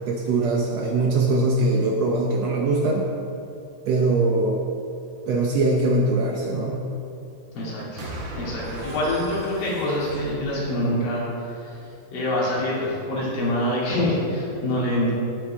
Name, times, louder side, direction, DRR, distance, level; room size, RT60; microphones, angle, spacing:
voice 1, 0.1-3.1 3.8-4.6 5.3-6.8, right 2 dB, 85° right, 0 dB, 1.4 m, -22 dB
voice 2, 7.5-11.8 12.1-15.1, left 1 dB, 80° left, -7 dB, 4.7 m, -26 dB
sound 1, 8.0-11.3, right 1 dB, 55° right, 1.4 m, -37 dB
18.0 x 7.4 x 3.5 m, 2.6 s
omnidirectional pair, 4.1 m